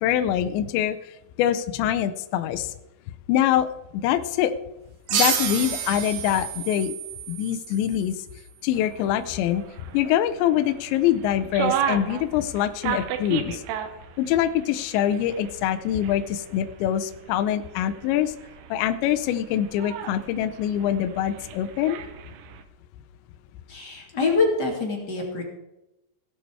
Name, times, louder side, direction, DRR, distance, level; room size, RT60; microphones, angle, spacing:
voice 1, 0.0-2.7 3.3-3.7 3.9-4.5 5.1-6.9 7.3-8.2 8.6-9.6 9.9-13.6 14.2-18.3 18.7-22.0, left 11 dB, 80° left, 10 dB, 2.7 m, -24 dB
sound 1, 5.1-8.3, right 7 dB, 60° right, 3.3 m, -29 dB
sound 2, 8.7-22.6, right 9 dB, 80° right, 3.5 m, -35 dB
voice 2, 23.7-25.4, left 3 dB, 30° left, 0 dB, 2.2 m, -25 dB
17.0 x 9.5 x 4.7 m, 0.92 s
omnidirectional pair, 5.7 m